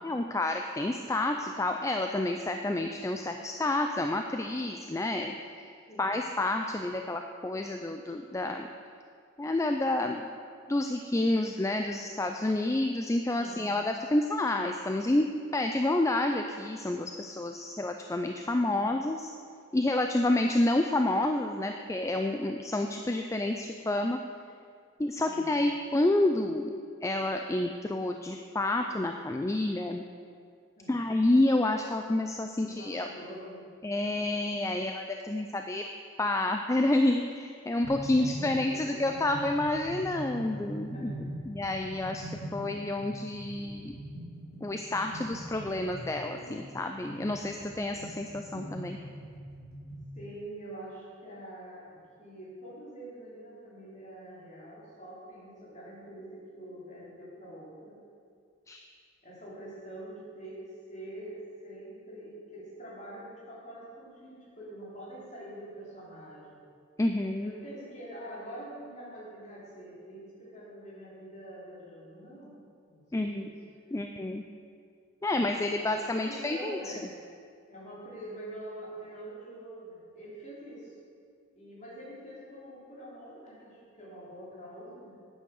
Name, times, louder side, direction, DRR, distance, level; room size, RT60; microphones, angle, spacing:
voice 1, 0.0-5.7 6.0-8.7 9.4-10.3 10.7-19.3 19.7-24.2 25.0-26.7 27.0-30.0 30.9-33.1 33.8-35.8 36.2-41.1 41.5-42.2 42.5-44.0 44.6-49.0 58.7-58.8 67.0-67.5 73.1-73.5 73.9-74.4 75.2-76.9, left 2 dB, 15° left, 5 dB, 0.4 m, -29 dB
voice 2, 13.4-13.7 25.2-25.5 30.7-31.0 32.6-33.7 38.1-39.2 40.9-41.4 50.1-58.0 59.2-66.6 67.4-72.5 72.9-73.5 75.3-77.1 77.7-81.0 81.5-85.1, right 1 dB, 35° left, -6 dB, 3.4 m, -45 dB
sound 1, 37.8-50.1, right 1 dB, 85° left, 3.3 m, -42 dB
9.3 x 9.0 x 6.4 m, 2.2 s
head